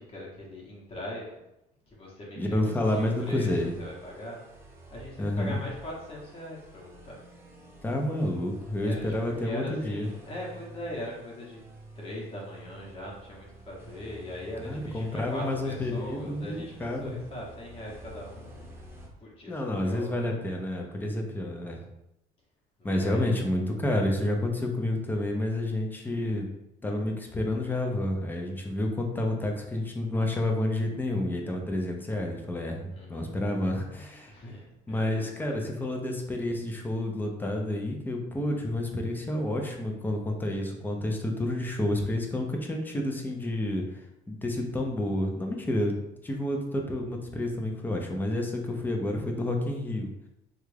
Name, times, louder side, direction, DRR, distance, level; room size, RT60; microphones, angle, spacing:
voice 1, 0.0-1.4 1.9-4.6 4.9-7.2 8.8-11.6 11.9-18.8 19.2-20.4 22.8-23.4 32.9-33.4 34.3-35.5, left 1 dB, 35° left, -4 dB, 1.0 m, -41 dB
voice 2, 2.4-3.7 5.2-5.6 7.8-10.1 14.7-17.2 19.5-21.8 22.8-26.5 26.8-34.3 34.9-44.0 44.3-45.9 46.2-50.1, left 1 dB, 10° left, 1 dB, 0.5 m, -29 dB
sound 1, 2.8-19.1, right 1 dB, 15° right, 0.8 m, -49 dB
3.3 x 2.4 x 3.3 m, 0.87 s
cardioid pair, 110°, 17 cm